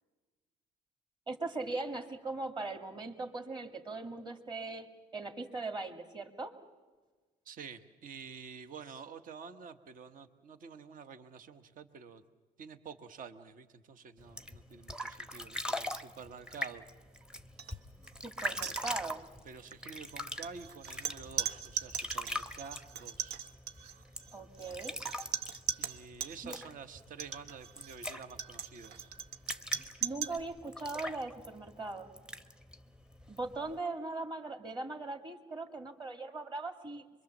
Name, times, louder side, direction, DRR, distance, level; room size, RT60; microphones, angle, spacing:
voice 1, 1.3-6.6 18.2-19.2 24.3-25.0 26.4-26.6 30.0-32.1 33.3-37.0, right 3 dB, 25° right, 6 dB, 2.2 m, -40 dB
voice 2, 7.4-12.2 12.6-16.8 17.6-17.8 19.4-23.4 25.8-29.1, right 6 dB, 55° right, 10 dB, 1.2 m, -49 dB
sound 1, 14.2-33.8, left 1 dB, 5° right, 0.8 m, -43 dB
sound 2, 17.6-17.8 18.0-18.2 18.5-19.3 20.1-26.4 27.1-30.4, right 8 dB, 75° right, 1.0 m, -39 dB
25.0 x 23.0 x 7.3 m, 1.3 s
cardioid pair, 110°, 17 cm